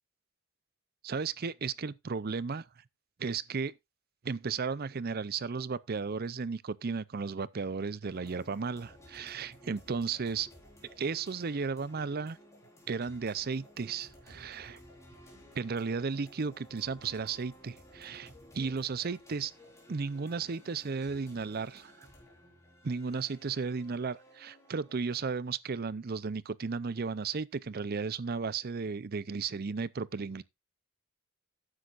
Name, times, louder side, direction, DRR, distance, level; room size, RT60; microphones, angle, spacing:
voice 1, 1.0-2.6 3.2-3.7 4.2-10.5 11.0-12.4 12.9-14.8 15.5-19.5 19.9-21.9 22.8-30.4, right 5 dB, 45° right, 0.5 m, -34 dB
sound 1, 8.0-25.0, equal, 15° left, 4.1 m, -56 dB
12.5 x 9.8 x 2.5 m
head